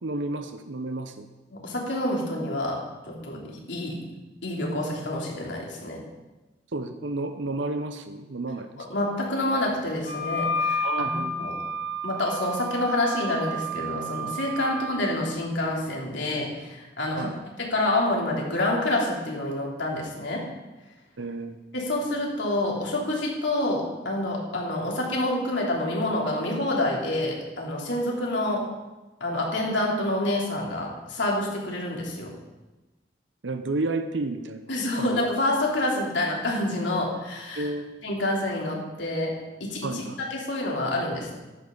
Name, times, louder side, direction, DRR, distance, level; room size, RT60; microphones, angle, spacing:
voice 1, 0.0-1.3 6.7-8.9 10.8-11.4 17.2-17.3 21.2-21.6 33.4-34.7 35.0-35.2 37.5-37.9 39.8-40.2, right 2 dB, 80° right, 9 dB, 0.8 m, -31 dB
voice 2, 1.5-4.0 4.4-6.0 8.8-11.6 12.0-17.3 17.6-20.5 21.7-28.7 29.2-32.4 34.7-37.7 38.0-40.0 40.3-41.3, left 1 dB, 75° left, -2 dB, 3.2 m, -28 dB
Wind instrument woodwind instrument, 10.0-15.0, equal, 40° right, 1.9 m, -31 dB
14.5 x 11.0 x 3.9 m, 1.1 s
head